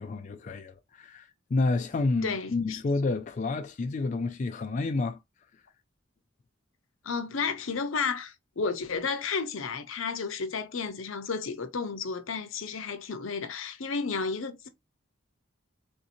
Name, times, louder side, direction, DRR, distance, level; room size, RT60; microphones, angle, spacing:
voice 1, 0.0-5.2, left 3 dB, 35° left, 0.3 m, -29 dB
voice 2, 2.2-2.8 7.0-14.7, left 5 dB, 80° left, 0.7 m, -32 dB
3.6 x 2.8 x 2.5 m
head